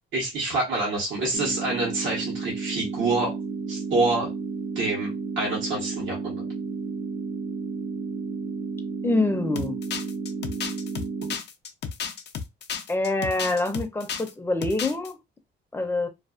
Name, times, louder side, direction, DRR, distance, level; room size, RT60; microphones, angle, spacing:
voice 1, 0.1-3.4 3.7-4.3 4.7-6.4, right 2 dB, 75° right, 1.0 m, -27 dB
sound 1, 1.3-11.3, right 4 dB, 45° right, 0.7 m, -32 dB
voice 2, 9.0-9.8 12.9-15.2 15.7-16.1, left 2 dB, 10° left, 0.6 m, -25 dB
sound 2, 9.6-14.3 14.6-15.1, left 7 dB, 60° left, 0.5 m, -33 dB
2.4 x 2.3 x 2.3 m
cardioid pair, 90°, 20 cm